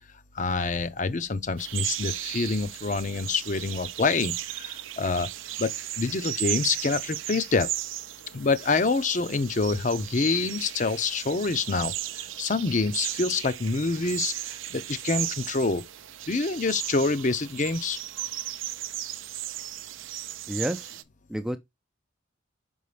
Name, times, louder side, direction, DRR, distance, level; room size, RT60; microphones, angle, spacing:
voice 1, 0.3-5.3 5.6-5.7 6.0-7.7 8.3-15.8 16.3-18.0, left 3 dB, 40° left, 0.6 m, -26 dB
sound 1, 1.6-21.0, right 13 dB, 85° right, 0.5 m, -36 dB
voice 2, 20.5-21.0 21.3-21.6, equal, 5° right, 0.3 m, -30 dB
5.6 x 5.4 x 3.3 m
head